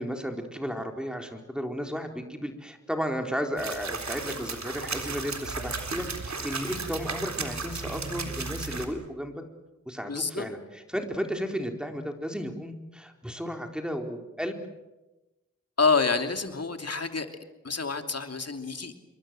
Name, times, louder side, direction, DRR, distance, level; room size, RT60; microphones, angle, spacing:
voice 1, 0.0-9.3 9.9-14.6, equal, 5° right, 3 dB, 4.3 m, -34 dB
sound 1, 3.6-8.9, right 4 dB, 65° right, 3.9 m, -34 dB
voice 2, 10.1-10.5 15.8-17.3 17.6-18.9, left 4 dB, 55° left, 6 dB, 2.9 m, -27 dB
28.0 x 23.0 x 7.7 m, 1.0 s
cardioid pair, 40°, 30 cm